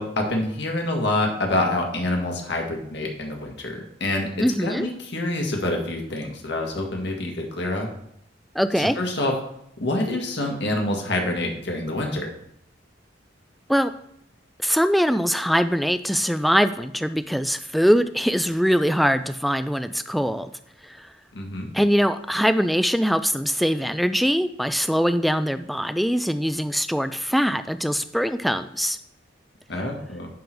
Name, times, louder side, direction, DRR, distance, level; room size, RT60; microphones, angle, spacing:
voice 1, 0.0-7.9 8.7-9.3 9.8-12.3 21.3-21.8 29.7-30.3, left 1 dB, 60° left, 1 dB, 1.7 m, -27 dB
voice 2, 4.4-4.9 8.6-9.0 13.7-13.9 14.6-20.5 21.0-21.1 21.7-29.0, equal, ahead, 10 dB, 0.3 m, -22 dB
10.0 x 3.9 x 4.5 m, 0.73 s
head